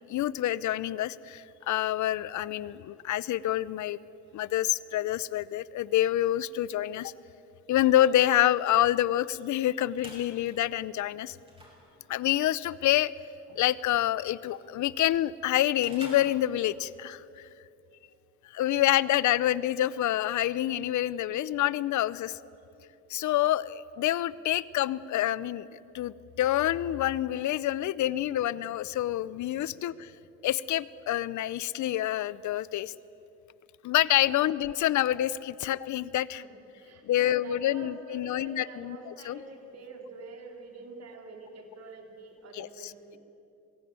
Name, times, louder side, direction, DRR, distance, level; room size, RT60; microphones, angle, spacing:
voice 1, 0.1-4.0 4.3-7.1 7.7-11.4 12.1-13.1 13.5-17.5 18.5-22.4 23.1-25.7 25.9-30.1 30.4-32.9 33.8-36.4 37.0-39.0 39.3-39.4 42.5-42.7, left 13 dB, 70° left, 19 dB, 0.7 m, -27 dB
sound 1, 9.6-17.1, right 1 dB, 20° right, 6.2 m, -53 dB
voice 2, 36.3-43.2, right 3 dB, 55° right, 3 dB, 3.6 m, -46 dB
22.0 x 16.0 x 9.5 m, 2.8 s
cardioid pair, 90°, 30 cm